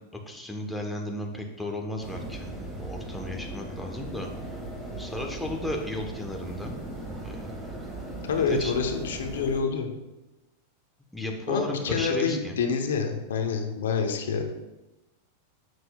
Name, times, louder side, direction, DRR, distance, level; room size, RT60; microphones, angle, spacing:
voice 1, 0.3-4.3 5.0-6.7 7.2-7.9 8.4-8.7 11.1-12.6, left 1 dB, 5° left, 1 dB, 1.0 m, -34 dB
sound 1, 2.0-9.6, right 2 dB, 10° right, 1.8 m, -38 dB
voice 2, 8.2-9.9 11.5-14.4, left 5 dB, 80° left, 4 dB, 0.8 m, -27 dB
7.8 x 5.9 x 2.3 m, 1.0 s
hypercardioid pair, 110°, 0 cm